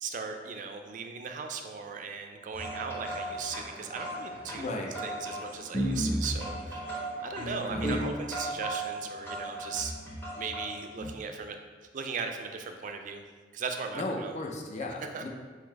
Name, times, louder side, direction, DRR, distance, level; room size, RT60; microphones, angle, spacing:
voice 1, 0.0-4.7 5.0-6.8 7.2-9.9 10.3-11.6 11.9-13.2 13.5-14.3 15.1-15.2, right 5 dB, 45° right, 5 dB, 0.4 m, -37 dB
sound 1, 2.5-11.1, right 1 dB, 15° left, 0.9 m, -35 dB
voice 2, 4.6-5.0 7.4-8.1 13.9-15.3, left 2 dB, 40° left, 1 dB, 0.5 m, -36 dB
3.9 x 2.7 x 4.5 m, 1.5 s
head